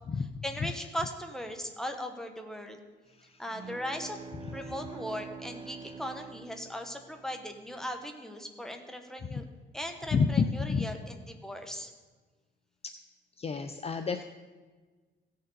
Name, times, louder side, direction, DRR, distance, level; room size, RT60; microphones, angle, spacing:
voice 1, 0.4-2.8 3.4-4.2 4.5-9.4 9.7-11.9, equal, ahead, 4 dB, 1.4 m, -38 dB
sound 1, 3.5-7.5, right 5 dB, 25° right, 0.4 m, -45 dB
voice 2, 4.4-4.7 9.3-9.4 10.1-10.9 12.8-12.9 13.4-14.2, left 5 dB, 30° left, 8 dB, 0.5 m, -30 dB
16.0 x 6.7 x 4.0 m, 1.4 s
cardioid pair, 90°, 20 cm